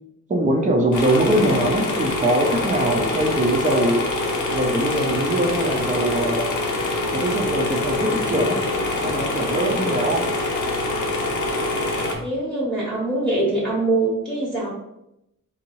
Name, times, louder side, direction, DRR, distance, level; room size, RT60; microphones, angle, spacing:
voice 1, 0.3-4.0 4.5-6.5 7.1-8.6 9.0-10.3, right 1 dB, 25° right, 2 dB, 0.5 m, -22 dB
sound 1, 0.9-12.1, left 2 dB, 70° left, 0.8 m, -25 dB
voice 2, 12.2-14.7, right 2 dB, 5° left, -8 dB, 0.9 m, -23 dB
3.8 x 2.6 x 3.0 m, 0.84 s
wide cardioid pair, 150°, 31 cm